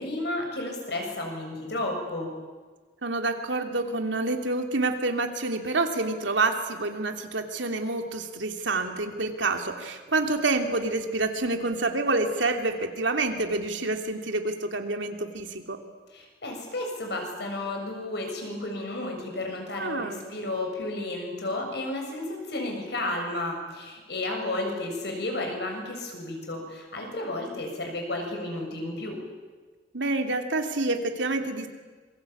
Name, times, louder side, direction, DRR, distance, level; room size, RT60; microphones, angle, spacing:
voice 1, 0.0-2.3 16.1-29.2, left 2 dB, 65° left, 2 dB, 7.1 m, -32 dB
voice 2, 3.0-15.8 19.8-20.2 29.9-31.7, right 2 dB, 90° right, 5 dB, 2.9 m, -28 dB
26.5 x 23.0 x 8.6 m, 1.4 s
head